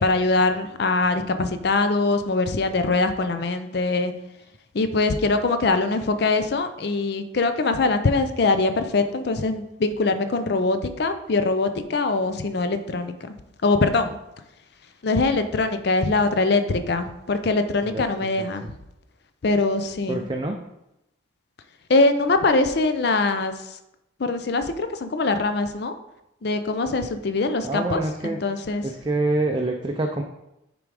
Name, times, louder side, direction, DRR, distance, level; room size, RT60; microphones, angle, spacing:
voice 1, 0.0-4.1 4.7-13.3 13.6-14.2 15.0-18.6 19.4-20.3 21.9-23.8 24.2-25.9 26.4-28.9, left 3 dB, 55° left, 9 dB, 0.5 m, -23 dB
voice 2, 20.1-20.6 27.6-28.4 28.8-30.2, right 2 dB, 25° right, 2 dB, 0.4 m, -26 dB
6.8 x 3.8 x 4.8 m, 0.88 s
head